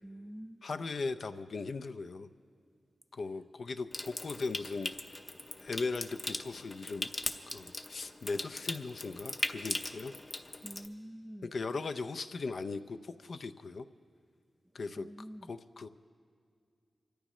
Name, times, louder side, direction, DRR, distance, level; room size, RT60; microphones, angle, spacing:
voice 1, 0.0-0.7 10.6-11.5 14.9-15.5, equal, 5° right, 0.3 m, -47 dB
voice 2, 0.6-2.3 3.1-4.9 5.6-7.1 7.5-10.1 11.5-13.9 14.7-15.1 15.5-15.9, left 4 dB, 60° left, 0.5 m, -38 dB
Water tap faucet / Sink (filling or washing) / Trickle dribble, 3.9-10.9, left 2 dB, 30° left, 0.7 m, -39 dB
26.5 x 13.5 x 3.1 m
wide cardioid pair, 115°, 0 cm